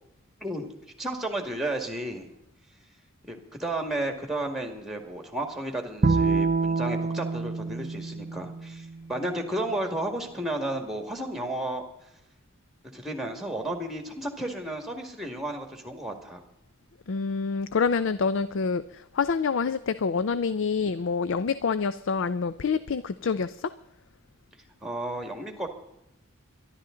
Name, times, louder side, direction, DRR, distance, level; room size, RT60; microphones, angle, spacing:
voice 1, 0.4-0.7 1.0-2.3 3.3-11.8 12.9-16.4 24.8-25.7, right 1 dB, ahead, 4 dB, 2.0 m, -33 dB
Bowed string instrument, 6.0-9.3, right 4 dB, 40° right, 0.5 m, -27 dB
voice 2, 17.1-23.7, left 5 dB, 60° left, 14 dB, 0.5 m, -27 dB
23.5 x 11.5 x 3.8 m, 0.87 s
head